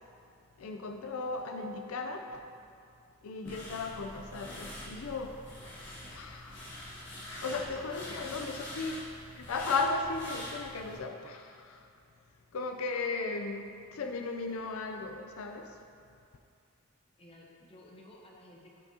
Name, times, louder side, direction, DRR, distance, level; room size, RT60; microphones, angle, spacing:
voice 1, 0.6-2.4 3.2-5.4 6.1-6.8 7.2-9.0 9.3-11.9 12.5-15.8, left 3 dB, 80° left, 4 dB, 0.5 m, -36 dB
sound 1, 3.4-11.0, left 1 dB, 55° left, 1.8 m, -45 dB
voice 2, 7.6-8.6 17.2-18.8, left 1 dB, 25° left, -2 dB, 0.9 m, -53 dB
11.5 x 5.9 x 2.8 m, 2.5 s
head